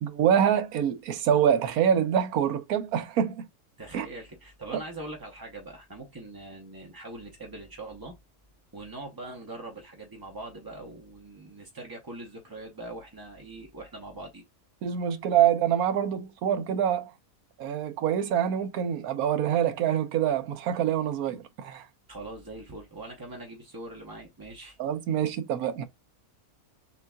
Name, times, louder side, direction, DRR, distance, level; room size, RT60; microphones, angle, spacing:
voice 1, 0.0-3.5 3.9-4.1 14.8-17.1 17.6-21.9 24.8-25.8, right 9 dB, 80° right, 1.2 m, -25 dB
voice 2, 3.8-8.2 8.7-14.4 22.1-24.8, right 2 dB, 20° right, 0.6 m, -42 dB
6.4 x 2.6 x 2.2 m
omnidirectional pair, 1.5 m